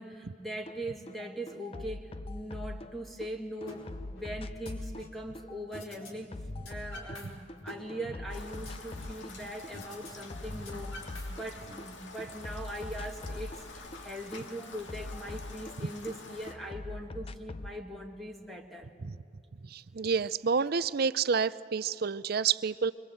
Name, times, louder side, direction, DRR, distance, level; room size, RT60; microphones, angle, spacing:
voice 1, 0.0-3.8 4.1-6.3 6.7-19.0, right 1 dB, ahead, 1 dB, 1.8 m, -41 dB
sound 1, 0.7-0.8 1.1-3.3 3.6-7.6 7.9-9.4 9.6-11.9 12.2-16.2 16.5-17.8, left 2 dB, 30° left, 0.6 m, -42 dB
sound 2, 3.7-3.8 4.2-5.2 5.7-6.1 6.4-7.3 7.6-9.2 9.7-10.1 10.4-11.7, left 2 dB, 90° left, 4.7 m, -46 dB
Rain, 8.3-16.5, left 3 dB, 65° left, 2.1 m, -48 dB
voice 2, 19.6-22.9, right 5 dB, 50° right, 16 dB, 0.5 m, -29 dB
25.5 x 23.5 x 7.9 m, 2.4 s
head